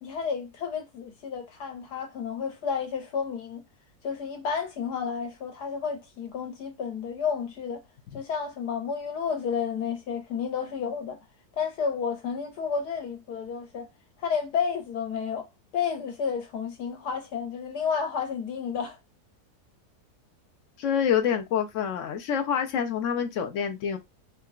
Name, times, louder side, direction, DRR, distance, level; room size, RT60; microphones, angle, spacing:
voice 1, 0.0-3.6 4.0-7.8 8.1-11.2 11.6-13.9 14.2-15.5 15.7-19.0, left 6 dB, 85° left, 1.5 m, -31 dB
voice 2, 20.8-24.0, left 8 dB, 70° left, 0.8 m, -27 dB
3.8 x 2.2 x 2.4 m
omnidirectional pair, 1.7 m